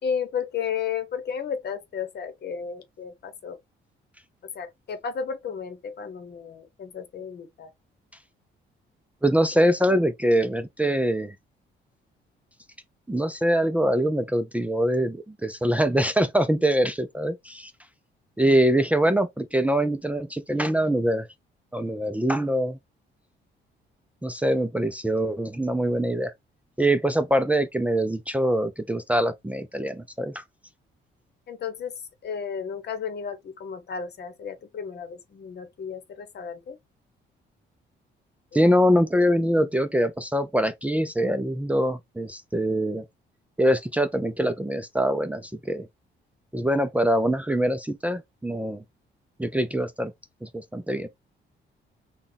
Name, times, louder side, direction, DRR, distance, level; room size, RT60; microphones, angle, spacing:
voice 1, 0.0-3.6 4.5-7.7 31.5-31.9 32.2-36.8 38.6-38.8, left 7 dB, 55° left, 1.0 m, -33 dB
voice 2, 9.2-11.3 13.1-17.7 18.4-21.3 21.7-22.8 24.2-26.3 26.8-30.4 38.5-43.0 43.6-45.9 46.5-48.8 49.4-50.1 50.4-51.1, equal, 5° right, 0.5 m, -23 dB
3.9 x 2.3 x 3.5 m
cardioid pair, 90°, 20 cm